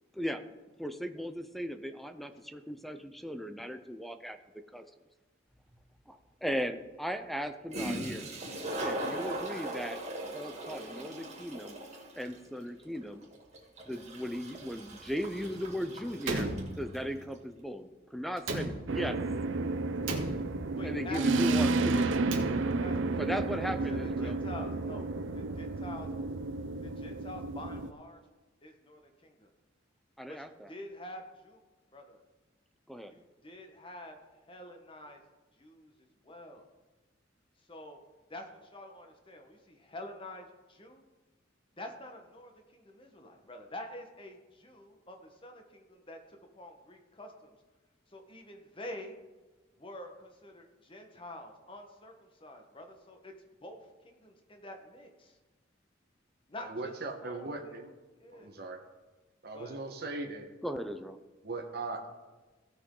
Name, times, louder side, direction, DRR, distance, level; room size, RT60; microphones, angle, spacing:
voice 1, 0.8-4.4 4.7-4.8 6.1-8.3 8.8-10.0 10.3-11.8 12.1-13.2 13.9-16.5 16.8-19.2 20.8-22.0 23.2-24.4 30.2-30.7 32.9-33.1 60.6-61.2, equal, ahead, 9 dB, 0.5 m, -37 dB
Toilet flush, 5.7-5.8 7.4-7.5 7.7-17.1, right 1 dB, 35° right, 2.2 m, -40 dB
Slam, 16.2-17.3 18.4-19.3 20.0-20.9 22.0-23.0, right 2 dB, 85° right, 1.7 m, -37 dB
sound 1, 18.9-27.9, right 3 dB, 70° right, 0.6 m, -31 dB
voice 2, 20.7-23.1 23.6-26.1 26.8-28.2 28.6-29.5 30.3-31.6 31.9-32.2 33.1-35.2 35.6-36.6 37.7-38.0 38.3-41.0 41.8-47.5 48.1-49.2 49.8-53.3 53.6-55.4 56.5-56.9 57.2-57.7 58.2-58.5 59.5-59.8, left 1 dB, 25° left, 4 dB, 1.2 m, -47 dB
voice 3, 56.6-57.9 58.3-58.8 59.4-60.5 61.4-62.1, right 3 dB, 55° right, 2 dB, 1.3 m, -39 dB
16.5 x 6.1 x 3.8 m, 1.2 s
head